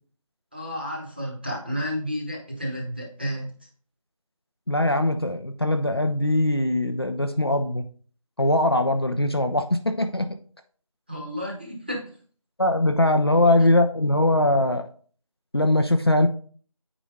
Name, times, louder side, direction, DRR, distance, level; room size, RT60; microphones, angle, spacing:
voice 1, 0.5-3.6 11.1-12.2, equal, 15° right, -1 dB, 1.0 m, -31 dB
voice 2, 4.7-7.8 8.4-10.3 12.6-14.8 15.5-16.3, left 1 dB, 45° left, 6 dB, 0.6 m, -21 dB
8.6 x 4.9 x 3.7 m, 0.44 s
figure-of-eight pair, 170°, 18 cm